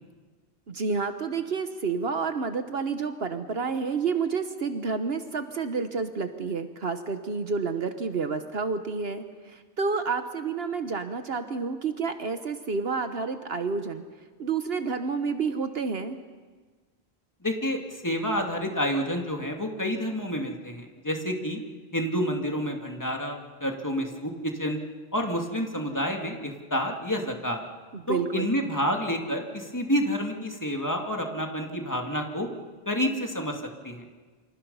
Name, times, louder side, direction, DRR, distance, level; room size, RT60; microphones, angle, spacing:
voice 1, 0.7-14.0 14.4-16.2 27.9-28.5, right 5 dB, 65° right, 8 dB, 1.3 m, -29 dB
voice 2, 17.4-21.6 21.9-24.8 25.1-27.6 28.1-32.5 32.9-34.1, equal, 15° left, 2 dB, 2.4 m, -29 dB
28.0 x 26.0 x 5.6 m, 1.4 s
omnidirectional pair, 1.1 m